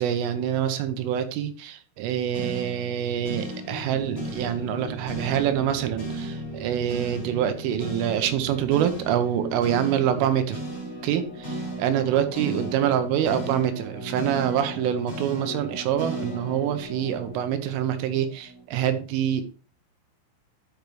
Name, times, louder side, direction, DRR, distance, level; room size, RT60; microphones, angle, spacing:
voice 1, 0.0-10.6 11.0-19.4, right 10 dB, 80° right, 9 dB, 3.4 m, -26 dB
sound 1, 2.3-18.6, right 1 dB, 30° left, 3.4 m, -35 dB
12.0 x 5.9 x 3.2 m, 0.37 s
omnidirectional pair, 6.0 m